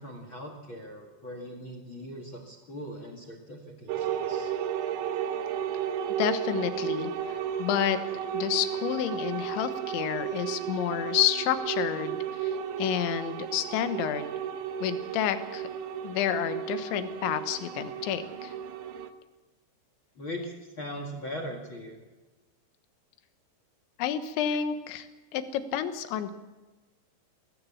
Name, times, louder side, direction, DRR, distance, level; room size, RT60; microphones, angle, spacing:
voice 1, 0.0-4.5 20.2-22.0, equal, 45° left, 4 dB, 1.7 m, -40 dB
sound 1, 3.9-19.1, right 9 dB, 75° right, 3.2 m, -33 dB
voice 2, 6.2-7.1 7.6-8.0 8.3-14.3 14.8-15.6 16.0-18.5 24.0-26.3, left 10 dB, 75° left, 9 dB, 3.4 m, -30 dB
21.5 x 17.0 x 7.3 m, 1.2 s
omnidirectional pair, 5.6 m